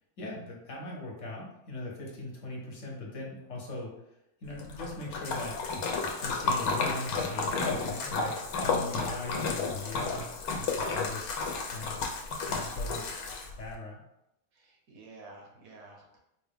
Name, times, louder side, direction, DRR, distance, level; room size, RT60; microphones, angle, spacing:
voice 1, 0.2-4.0 4.4-5.6 6.2-10.3 10.9-11.4 11.7-12.0 12.5-13.0 13.6-14.0, left 2 dB, 60° left, -2 dB, 1.2 m, -40 dB
Splash splatter, 4.6-13.7, left 4 dB, 90° left, 1.2 m, -32 dB
voice 2, 7.7-8.5 9.7-10.2 14.5-16.3, right 3 dB, 75° right, 0 dB, 1.3 m, -52 dB
4.7 x 2.2 x 3.5 m, 0.86 s
omnidirectional pair, 1.5 m